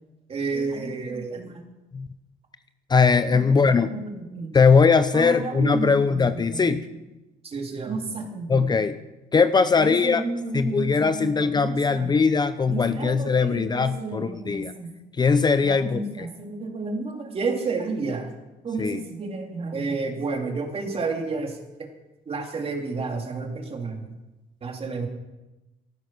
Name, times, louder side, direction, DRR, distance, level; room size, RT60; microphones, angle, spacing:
voice 1, 0.3-1.6 3.3-4.7 5.1-6.8 7.4-8.6 9.8-12.2 12.7-14.9 15.6-18.3 18.6-21.9 22.3-24.1 24.6-25.1, right 3 dB, 35° right, 3 dB, 2.8 m, -31 dB
voice 2, 2.9-3.9 4.5-6.8 8.5-9.0 9.3-10.2 10.5-14.7 15.2-16.3 18.8-19.0, left 5 dB, 25° left, 11 dB, 0.7 m, -20 dB
14.5 x 12.5 x 6.1 m, 1.0 s
cardioid pair, 110°, 17 cm